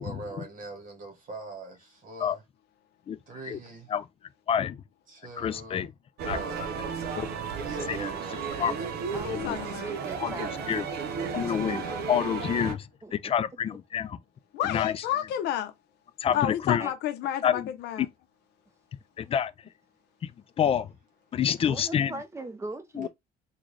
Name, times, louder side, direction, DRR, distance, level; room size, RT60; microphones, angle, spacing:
voice 1, 0.0-2.4 3.3-3.9 5.1-5.9 6.2-6.8 7.6-9.1 10.6-10.7 13.7-13.8, right 2 dB, 50° right, 1.5 m, -42 dB
voice 2, 4.5-4.8 5.4-5.9 6.3-6.4 7.2-7.3 7.9-8.1 8.6-8.7 9.3-9.6 10.2-10.8 11.3-14.2 14.6-14.9 16.2-16.8 17.4-17.7 18.0-18.1 19.2-19.5 20.2-20.3 20.6-20.9 21.3-22.1 23.0-23.1, left 8 dB, 35° left, 0.4 m, -28 dB
sound 1, 6.2-12.7, right 6 dB, 70° right, 0.7 m, -34 dB
voice 3, 9.2-9.9 14.5-15.7 16.3-18.1, left 11 dB, 80° left, 0.7 m, -30 dB
voice 4, 10.1-11.6 13.0-13.3 16.3-16.5 16.8-16.9 21.7-23.1, right 2 dB, 15° right, 0.7 m, -41 dB
3.7 x 2.3 x 3.2 m
cardioid pair, 110°, 17 cm